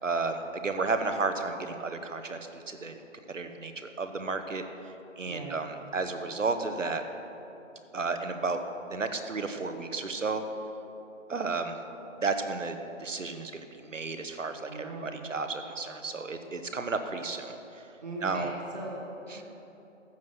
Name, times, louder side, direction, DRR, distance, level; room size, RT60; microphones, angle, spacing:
voice 1, 0.0-3.0 3.3-4.6 5.2-7.0 7.9-8.6 8.9-10.4 11.3-11.8 12.2-17.8 18.2-18.5, right 4 dB, 75° right, 7 dB, 1.2 m, -32 dB
voice 2, 5.2-5.6 14.7-15.3 18.0-19.5, right 2 dB, 30° right, -3 dB, 1.5 m, -40 dB
13.5 x 8.0 x 5.9 m, 3.0 s
figure-of-eight pair, 160°, 39 cm